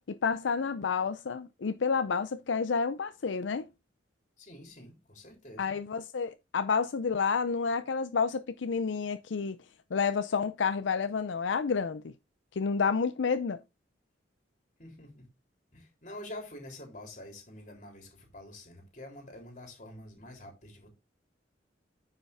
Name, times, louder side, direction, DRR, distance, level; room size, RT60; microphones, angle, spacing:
voice 1, 0.1-3.7 5.6-9.6 9.9-12.1 12.5-13.6, left 5 dB, 85° left, 0.5 m, -30 dB
voice 2, 4.4-5.7 14.8-15.2 15.7-20.9, left 1 dB, 45° left, 3.6 m, -47 dB
9.8 x 5.7 x 3.5 m
head